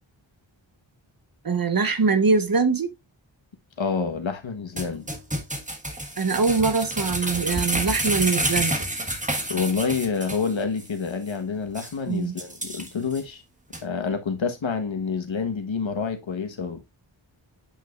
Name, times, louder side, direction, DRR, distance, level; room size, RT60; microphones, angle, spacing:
voice 1, 1.4-2.9 6.2-8.9 12.1-12.3, right 4 dB, 50° right, 1.0 m, -23 dB
voice 2, 3.8-5.0 9.5-13.4 13.8-16.8, left 5 dB, 75° left, 1.4 m, -28 dB
sound 1, 4.8-10.5 10.8-10.9 11.3-11.4 11.8-11.9 12.4-13.2 13.7-13.8, right 1 dB, 15° right, 1.5 m, -29 dB
8.6 x 5.4 x 2.5 m
wide cardioid pair, 105°, 47 cm